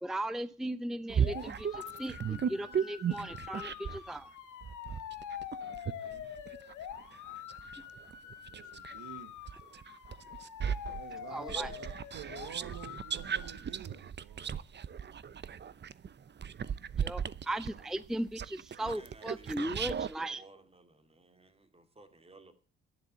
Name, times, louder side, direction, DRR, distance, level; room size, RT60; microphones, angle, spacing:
voice 1, 0.0-4.3 11.3-11.7 17.0-20.4, right 1 dB, ahead, 0.6 m, -37 dB
sound 1, 1.1-4.1 4.6-9.0 9.5-20.1, right 7 dB, 35° right, 0.8 m, -36 dB
sound 2, 1.2-13.7, left 9 dB, 80° left, 2.3 m, -45 dB
voice 2, 5.6-6.3 8.5-9.3 11.0-14.5, right 11 dB, 90° right, 1.4 m, -49 dB
voice 3, 18.8-22.5, right 2 dB, 20° right, 2.5 m, -58 dB
11.5 x 10.5 x 7.9 m
cardioid pair, 90°, 30 cm